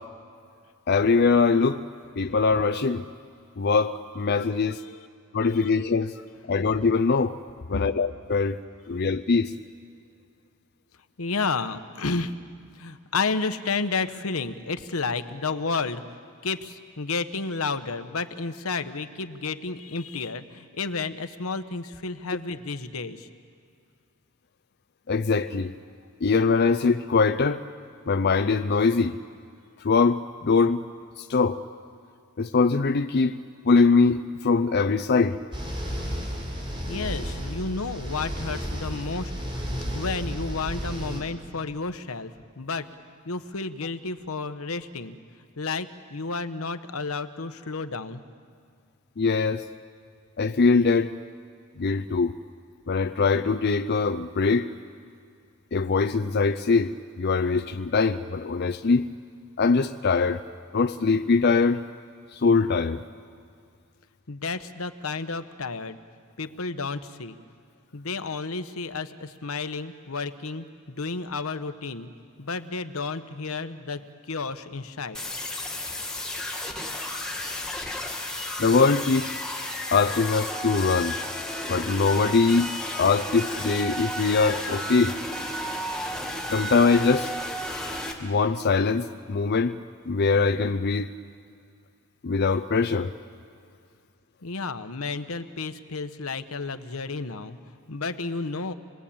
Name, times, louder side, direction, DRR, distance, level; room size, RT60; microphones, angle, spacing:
voice 1, 0.9-1.8 2.2-3.0 3.6-4.8 5.3-6.1 6.5-7.4 7.7-8.6 8.9-9.5 25.1-25.7 26.2-27.6 28.1-29.2 29.8-30.8 31.2-31.6 32.4-33.4 33.6-35.4 49.2-49.6 50.4-51.1 51.8-52.3 52.9-54.7 55.7-56.9 57.2-59.1 59.6-60.4 60.7-61.8 62.3-63.0 78.6-79.4 79.9-81.2 81.7-82.7 83.0-85.1 86.5-87.3 88.2-89.8 90.1-91.1 92.2-93.1, left 4 dB, 50° left, 8 dB, 0.6 m, -22 dB
voice 2, 4.6-5.1 5.4-5.7 7.7-7.9 11.2-12.4 12.7-16.0 16.4-23.3 36.9-39.3 39.9-42.9 43.2-45.2 45.6-48.2 64.3-66.0 66.4-67.4 67.9-72.1 72.4-75.2 94.4-97.6 97.9-98.7, left 4 dB, 80° left, 10 dB, 1.1 m, -31 dB
sound 1, 35.5-41.2, equal, 25° right, 4.2 m, -32 dB
sound 2, 75.1-88.1, left 1 dB, 5° left, 2.4 m, -32 dB
27.5 x 21.0 x 8.7 m, 2.3 s
head